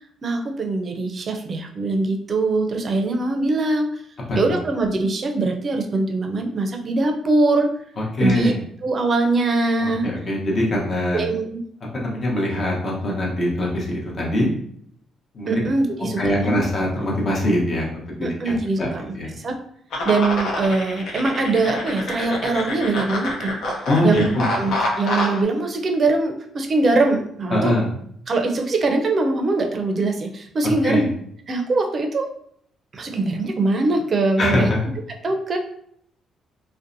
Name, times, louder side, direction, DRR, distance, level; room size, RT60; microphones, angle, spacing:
voice 1, 0.2-3.9 4.4-7.7 8.2-8.5 8.8-10.1 11.1-11.6 15.5-16.6 18.2-19.5 20.0-23.5 24.0-24.3 24.5-27.8 28.3-31.1 31.5-32.3 32.9-34.7 35.2-35.6, right 3 dB, 45° right, 4 dB, 0.4 m, -22 dB
voice 2, 4.3-4.6 8.2-8.6 9.8-11.2 11.9-14.5 15.3-15.6 16.0-17.8 18.2-18.9 19.2-19.3 23.9-24.5 27.5-27.9 30.8-31.0 34.4-34.8, left 1 dB, 45° left, -2 dB, 0.8 m, -22 dB
sound 1, 19.9-25.4, left 1 dB, 75° left, 0.5 m, -27 dB
2.6 x 2.1 x 2.5 m, 0.67 s
cardioid pair, 90°, 0 cm